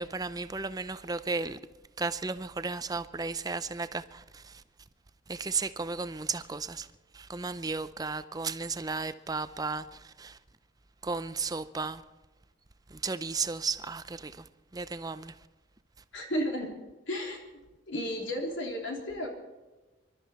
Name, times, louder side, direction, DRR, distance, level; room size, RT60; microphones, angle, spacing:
voice 1, 0.0-1.6 2.0-4.0 5.3-6.9 7.3-9.8 10.2-10.3 11.0-12.0 13.0-14.3 14.7-15.3, right 4 dB, 20° right, 0.5 m, -34 dB
voice 2, 16.1-16.7 17.1-17.4 17.9-19.3, equal, 75° left, 3.3 m, -33 dB
24.5 x 12.5 x 4.3 m
head